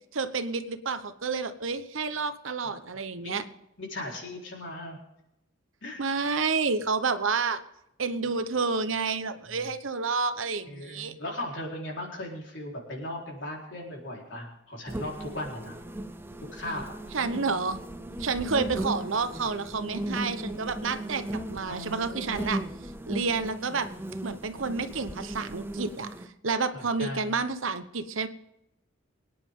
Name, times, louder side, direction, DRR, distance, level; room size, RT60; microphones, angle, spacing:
voice 1, 0.1-3.4 6.0-7.6 8.0-11.1 17.1-17.8 18.2-22.6 23.1-23.9 24.2-28.3, right 4 dB, 85° right, 11 dB, 1.0 m, -29 dB
voice 2, 3.8-5.0 5.8-6.0 10.7-15.8 16.5-17.0 21.7-22.5 26.7-27.4, left 1 dB, 65° left, -1 dB, 4.2 m, -38 dB
sound 1, 14.9-26.3, right 1 dB, 10° right, 0.7 m, -37 dB
23.5 x 9.9 x 3.8 m, 0.83 s
head